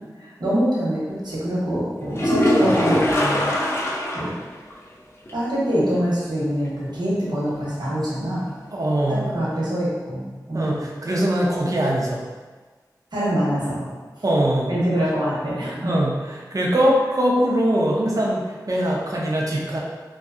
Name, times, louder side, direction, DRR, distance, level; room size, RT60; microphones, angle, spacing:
voice 1, 0.2-3.5 4.1-4.4 5.3-8.5 9.1-10.9 13.1-13.9 14.7-15.9, equal, 75° right, -8 dB, 0.9 m, -24 dB
sound 1, 2.1-4.4 4.7-4.8 5.3-5.4 9.1-9.2, left 1 dB, 35° left, 0.5 m, -21 dB
voice 2, 8.7-9.3 10.5-12.2 14.2-14.7 15.8-19.8, right 1 dB, 50° right, -3 dB, 0.5 m, -22 dB
2.7 x 2.2 x 2.4 m, 1.4 s
wide cardioid pair, 60°, 7 cm